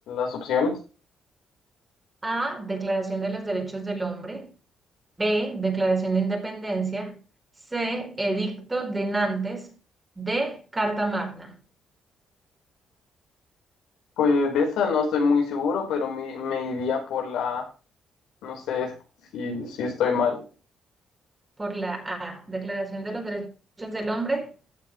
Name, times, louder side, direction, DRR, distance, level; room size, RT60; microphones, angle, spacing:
voice 1, 0.1-0.8 14.2-17.7 18.4-18.9 19.3-20.4, left 5 dB, 85° left, 4.4 m, -25 dB
voice 2, 2.2-4.5 5.2-7.1 7.7-9.7 10.2-11.5 21.6-23.5 23.8-24.5, right 2 dB, 20° right, 4.6 m, -28 dB
14.5 x 8.5 x 3.2 m
cardioid pair, 90°, 0 cm